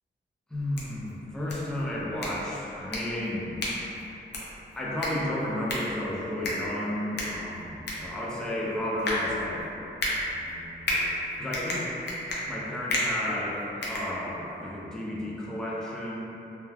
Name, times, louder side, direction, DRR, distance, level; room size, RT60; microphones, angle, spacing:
sound 1, 0.5-14.7, left 1 dB, 60° left, 0.6 m, -34 dB
voice 1, 0.5-3.6 4.8-9.6 10.1-12.0 12.5-16.2, left 1 dB, 5° left, -7 dB, 0.5 m, -33 dB
2.2 x 2.2 x 3.3 m, 3.0 s
cardioid pair, 80°, 20 cm